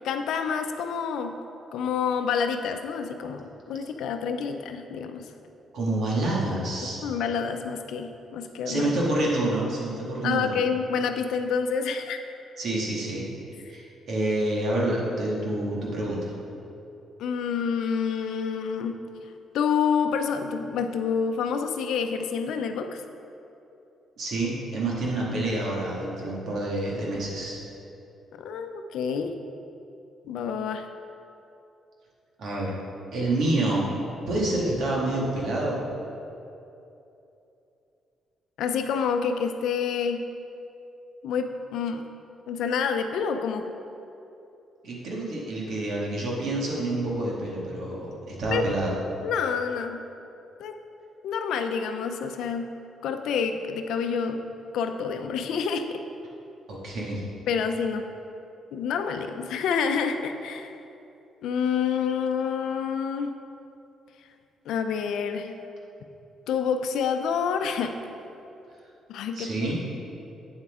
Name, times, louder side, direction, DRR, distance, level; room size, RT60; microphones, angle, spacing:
voice 1, 0.0-1.3 1.7-5.3 7.0-8.9 10.2-12.2 17.2-18.9 19.5-23.0 28.4-29.3 30.2-30.9 38.6-40.2 41.2-42.0 42.5-43.7 48.5-48.6 49.2-50.0 50.6-50.8 51.2-52.7 53.0-54.5 54.7-56.0 57.5-58.1 58.7-60.7 61.4-63.3 64.7-65.6 66.5-67.9 69.1-69.9, left 6 dB, 80° left, 6 dB, 0.5 m, -28 dB
voice 2, 5.7-7.0 8.7-10.6 12.6-13.3 13.7-16.3 24.2-27.6 32.4-32.8 33.1-33.9 34.3-35.8 44.8-48.9 56.7-57.2 69.4-69.8, right 2 dB, 65° right, -4 dB, 2.1 m, -28 dB
8.8 x 7.6 x 3.7 m, 2.8 s
cardioid pair, 90°, 0 cm